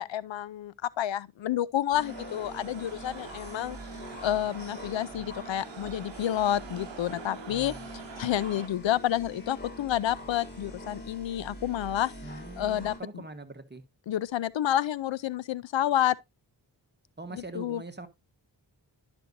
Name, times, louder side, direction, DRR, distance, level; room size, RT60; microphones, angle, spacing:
voice 1, 0.0-3.8 4.2-12.1 12.6-13.2 14.1-16.2 17.3-17.8, left 11 dB, 85° left, 0.5 m, -29 dB
sound 1, 1.9-13.0, left 1 dB, 20° left, 3.2 m, -44 dB
sound 2, 2.1-8.7, right 8 dB, 85° right, 0.8 m, -46 dB
voice 2, 7.5-7.9 12.2-13.8 17.2-18.1, right 3 dB, 25° right, 1.3 m, -43 dB
11.5 x 6.1 x 2.6 m
cardioid pair, 55°, 44 cm